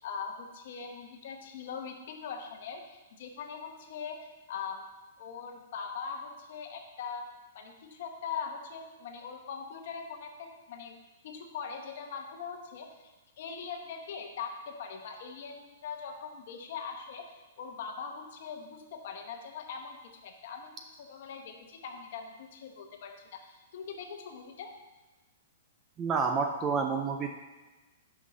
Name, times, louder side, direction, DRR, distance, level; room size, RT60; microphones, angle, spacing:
voice 1, 0.0-4.8 5.2-11.0 11.2-13.1 13.4-17.2 17.6-20.0 20.2-20.7 21.0-23.1 23.4-24.7, left 6 dB, 45° left, 4 dB, 1.0 m, -41 dB
voice 2, 26.0-27.3, right 5 dB, 15° right, 4 dB, 0.3 m, -29 dB
6.3 x 5.5 x 6.1 m, 1.2 s
hypercardioid pair, 180°, 0 cm